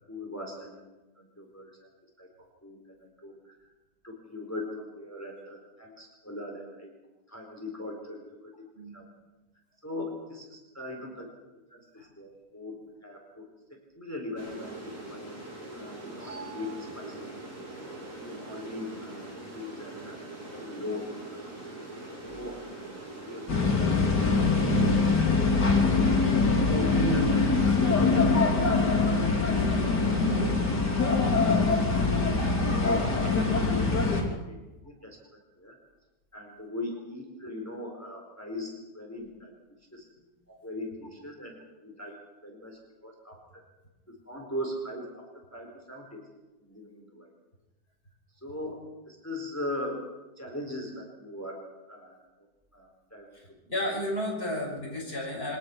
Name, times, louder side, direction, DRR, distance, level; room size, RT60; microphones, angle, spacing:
voice 1, 0.1-0.8 1.2-1.7 2.2-2.3 2.6-3.5 4.0-6.9 7.3-8.7 8.9-9.0 9.8-11.3 11.7-15.3 15.7-17.2 18.2-20.2 20.5-21.4 22.2-22.6 23.2-23.8 24.2-24.9 26.6-27.8 29.7-30.9 32.7-35.2 35.6-35.8 36.3-39.5 39.9-40.1 40.5-43.6 44.3-45.2 45.5-46.2 46.6-47.3 48.4-48.8 49.1-50.0 50.4-51.6 51.9-52.2 52.7-53.4, left 1 dB, 10° left, 0 dB, 4.3 m, -40 dB
sound 1, 14.4-25.2, right 2 dB, 50° right, 4.7 m, -42 dB
sound 2, 23.5-34.2, left 3 dB, 70° left, 4.1 m, -23 dB
voice 2, 53.3-55.6, left 1 dB, 35° left, -2 dB, 6.2 m, -33 dB
23.5 x 19.0 x 6.1 m, 1.1 s
omnidirectional pair, 1.9 m